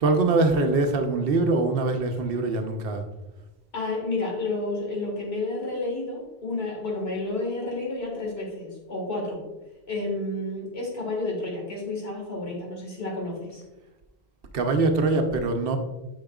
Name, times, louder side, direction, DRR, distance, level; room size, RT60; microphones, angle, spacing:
voice 1, 0.0-3.0 14.5-15.8, right 3 dB, 65° right, 5 dB, 1.0 m, -23 dB
voice 2, 3.7-9.4 9.9-13.6, left 2 dB, 75° left, -1 dB, 2.0 m, -30 dB
8.7 x 5.6 x 2.3 m, 1.0 s
omnidirectional pair, 1.1 m